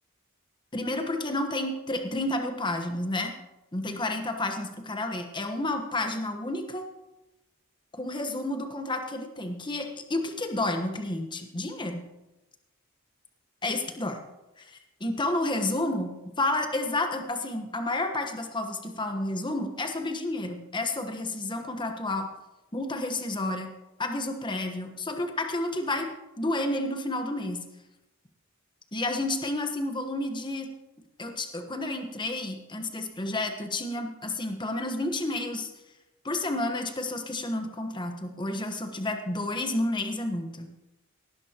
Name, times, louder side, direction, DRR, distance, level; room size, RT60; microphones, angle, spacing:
voice 1, 0.7-3.3 3.7-6.9 8.0-12.1 13.6-14.2 14.6-22.3 22.7-23.7 24.0-26.1 26.4-27.6 28.9-30.7 31.2-35.7 36.2-40.7, left 2 dB, 20° left, 5 dB, 1.2 m, -30 dB
18.0 x 11.5 x 3.0 m, 0.99 s
head